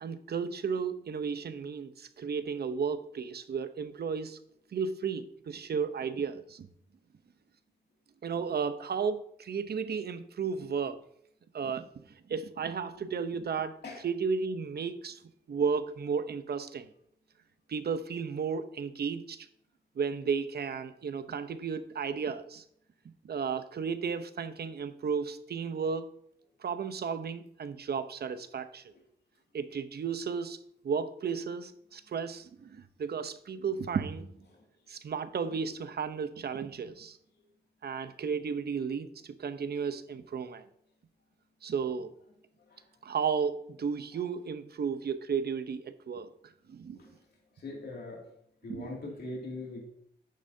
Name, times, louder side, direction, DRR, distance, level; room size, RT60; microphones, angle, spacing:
voice 1, 0.0-4.4 4.7-6.7 8.2-11.0 11.5-11.9 12.3-13.7 14.0-15.2 15.5-16.9 17.7-19.5 20.0-22.6 23.2-26.1 26.6-28.8 29.5-30.6 30.8-34.4 34.9-37.2 37.8-40.6 41.6-42.1 43.0-47.0 48.7-48.9, right 6 dB, 60° right, 11 dB, 0.8 m, -33 dB
voice 2, 47.6-48.3 48.6-49.9, left 2 dB, 65° left, -2 dB, 2.4 m, -41 dB
10.0 x 9.4 x 2.8 m, 0.69 s
cardioid pair, 75°, 18 cm